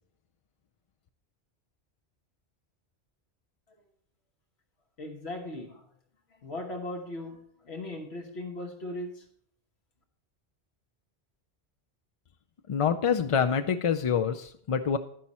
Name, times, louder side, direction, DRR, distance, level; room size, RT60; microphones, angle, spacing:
voice 1, 5.0-5.9 6.3-9.3, left 1 dB, 75° left, 1.5 m, -38 dB
voice 2, 12.7-15.0, left 7 dB, 55° left, 0.3 m, -26 dB
11.0 x 10.0 x 4.2 m
omnidirectional pair, 1.1 m